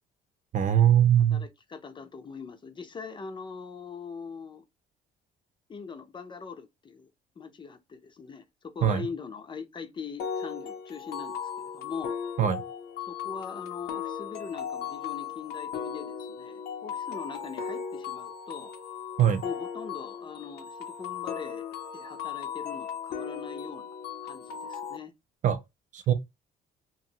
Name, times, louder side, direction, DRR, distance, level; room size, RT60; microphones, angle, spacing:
voice 1, 0.5-1.5 8.8-9.1 12.4-12.6 19.2-19.4 25.4-25.6 25.9-26.1, right 9 dB, 45° right, 0.5 m, -22 dB
voice 2, 1.3-4.6 5.7-7.1 7.4-12.1 13.1-18.7 19.4-21.7 21.9-23.9 24.2-25.1, left 5 dB, 30° left, 0.5 m, -42 dB
sound 1, 10.2-25.0, left 7 dB, 70° left, 0.6 m, -37 dB
2.9 x 2.5 x 2.7 m
cardioid pair, 110°, 17 cm